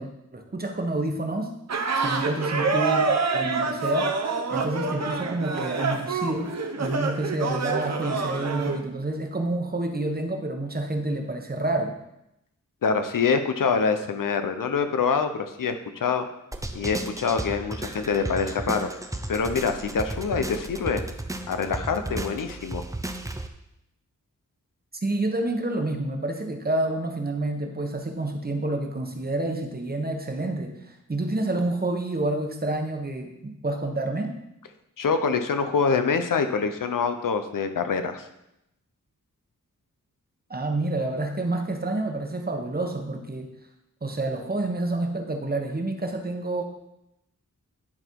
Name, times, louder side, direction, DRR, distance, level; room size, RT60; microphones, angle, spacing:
voice 1, 0.0-1.5 1.9-6.5 6.8-11.9 25.0-34.3 40.5-43.5 44.0-46.6, right 2 dB, 30° right, 4 dB, 1.1 m, -28 dB
sound 1, 1.7-8.8, right 4 dB, 55° right, 0.9 m, -27 dB
voice 2, 12.8-16.3 16.7-18.9 19.3-21.0 21.5-22.8 35.0-38.3, left 5 dB, 85° left, 8 dB, 0.8 m, -25 dB
sound 2, 16.5-23.5, right 2 dB, 10° right, 0.6 m, -34 dB
11.0 x 4.3 x 4.6 m, 0.84 s
wide cardioid pair, 90°, 32 cm